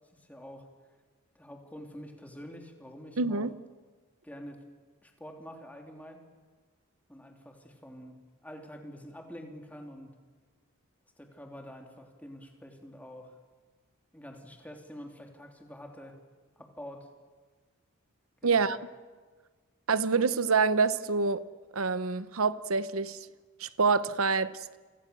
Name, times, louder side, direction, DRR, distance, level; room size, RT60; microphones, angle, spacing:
voice 1, 0.1-0.7 1.3-3.5 4.2-4.6 5.0-6.2 7.1-10.2 11.2-13.4 14.1-16.2 16.6-17.1 18.4-18.7, equal, 5° left, 3.2 m, -47 dB
voice 2, 3.2-3.5 18.4-18.8 19.9-21.4 21.7-23.2 23.6-24.6, right 4 dB, 80° right, 1.0 m, -26 dB
29.5 x 25.5 x 7.0 m
head